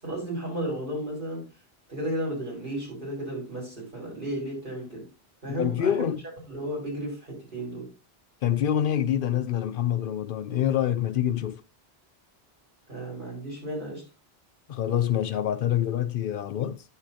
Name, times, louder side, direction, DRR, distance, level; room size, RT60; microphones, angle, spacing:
voice 1, 0.0-1.5 1.9-5.1 5.4-6.1 6.5-7.9 12.9-14.1, right 1 dB, 50° right, 5.4 m, -33 dB
voice 2, 5.6-6.2 8.4-11.6 14.7-16.8, left 10 dB, 60° left, 0.7 m, -26 dB
9.9 x 6.8 x 2.7 m
omnidirectional pair, 1.1 m